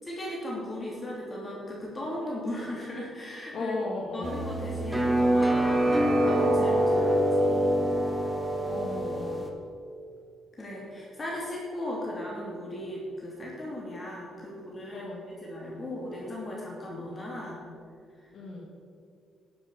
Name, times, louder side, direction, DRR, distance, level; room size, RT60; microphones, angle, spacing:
voice 1, 0.0-3.7 4.1-7.8 10.6-17.6 18.2-18.3, left 1 dB, 25° left, -4 dB, 2.9 m, -37 dB
voice 2, 3.5-4.3 8.7-9.4 14.9-15.2 18.3-18.6, left 3 dB, 65° left, -3 dB, 2.1 m, -35 dB
sound 1, 4.2-9.5, right 1 dB, 5° right, 1.8 m, -25 dB
12.5 x 7.2 x 7.0 m, 2.3 s
cardioid pair, 90°, 0 cm